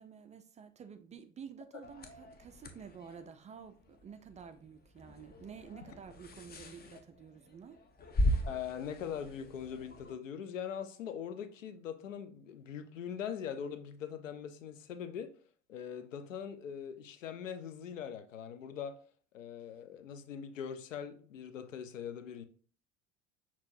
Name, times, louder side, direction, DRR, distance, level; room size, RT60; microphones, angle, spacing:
voice 1, 0.0-7.8, right 7 dB, 20° right, 0.3 m, -50 dB
sound 1, 1.8-10.1, left 1 dB, 25° left, 0.7 m, -39 dB
voice 2, 8.5-15.3 15.7-19.0 19.3-22.4, left 8 dB, 85° left, 0.6 m, -42 dB
6.0 x 2.9 x 2.6 m
hypercardioid pair, 70°, 37 cm